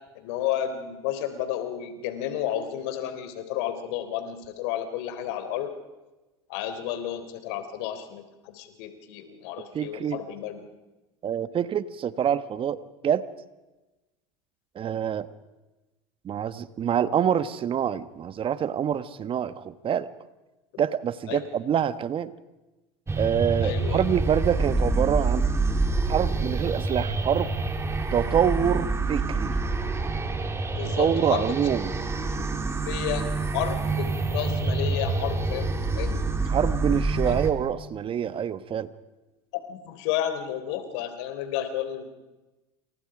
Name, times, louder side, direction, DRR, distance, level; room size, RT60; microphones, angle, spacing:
voice 1, 0.1-5.7 6.5-10.6 21.3-21.4 23.6-24.0 30.7-31.5 32.9-33.3 33.5-36.2 37.3-37.4 39.5-42.1, left 10 dB, 70° left, 9 dB, 3.7 m, -32 dB
voice 2, 9.7-10.2 11.2-13.3 14.7-15.3 16.2-20.1 20.8-22.3 23.2-25.4 26.0-27.5 28.1-29.5 30.8-31.9 36.5-38.9, right 8 dB, 40° right, 14 dB, 1.4 m, -26 dB
sound 1, 23.1-37.5, right 3 dB, 20° right, 3.7 m, -27 dB
29.0 x 28.0 x 5.0 m, 1.1 s
hypercardioid pair, 80°, 14 cm